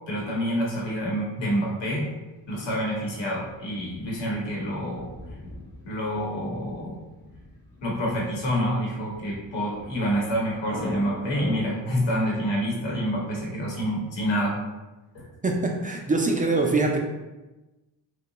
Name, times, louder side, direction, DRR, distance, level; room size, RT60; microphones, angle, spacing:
voice 1, 0.1-2.1 2.5-5.1 5.8-7.0 7.8-14.6 15.1-15.3, equal, 75° left, -3 dB, 1.1 m, -27 dB
Thunder, 3.4-12.4, left 1 dB, 25° left, 0.8 m, -43 dB
voice 2, 15.4-17.0, right 3 dB, 20° right, 0 dB, 0.3 m, -23 dB
2.7 x 2.3 x 3.9 m, 1.1 s
cardioid pair, 105°, 45 cm